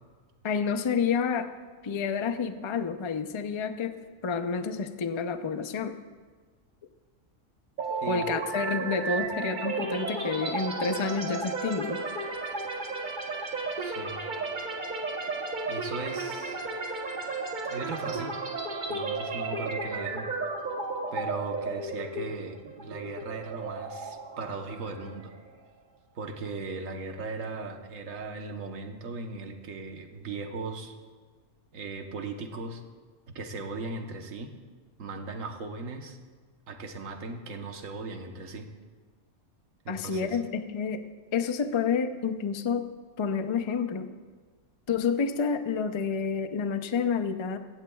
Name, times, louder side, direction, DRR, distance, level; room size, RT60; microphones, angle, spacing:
voice 1, 0.4-1.5 1.8-6.0 8.1-12.0 39.9-41.0 41.3-42.9 43.2-44.1 44.9-47.6, left 5 dB, 45° left, 9 dB, 0.3 m, -29 dB
sound 1, 7.8-25.5, right 3 dB, 40° right, 1.1 m, -34 dB
voice 2, 13.8-14.2 15.7-16.6 17.7-18.3 18.9-20.3 21.1-25.3 26.1-30.9 31.7-32.8 33.3-34.5 35.0-36.2 36.7-38.7 39.8-40.4, right 3 dB, 75° right, 4 dB, 1.4 m, -38 dB
16.0 x 15.5 x 2.3 m, 1.5 s
omnidirectional pair, 1.4 m